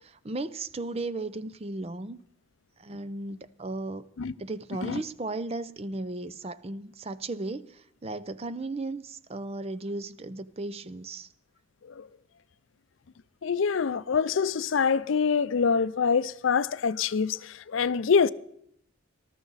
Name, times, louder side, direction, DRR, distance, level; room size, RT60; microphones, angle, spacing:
voice 1, 0.0-2.2 2.8-4.1 4.4-11.3, right 2 dB, 30° right, 0.5 m, -35 dB
voice 2, 13.4-18.3, left 6 dB, 80° left, 0.5 m, -25 dB
19.5 x 13.0 x 4.0 m
head